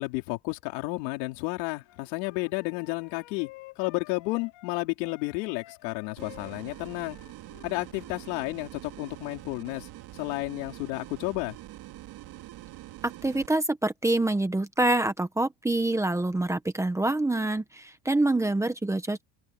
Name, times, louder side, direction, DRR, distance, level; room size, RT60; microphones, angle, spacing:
voice 1, 0.0-3.5 3.8-7.2 7.6-11.6, left 25 dB, 85° left, 4.8 m, -32 dB
Wind instrument woodwind instrument, 1.8-4.7 5.0-8.5, left 19 dB, 55° left, 3.2 m, -51 dB
sound 1, 6.2-13.5, right 16 dB, 50° right, 2.6 m, -45 dB
voice 2, 13.0-19.2, right 2 dB, 5° right, 1.2 m, -26 dB
open air
cardioid pair, 165°, 48 cm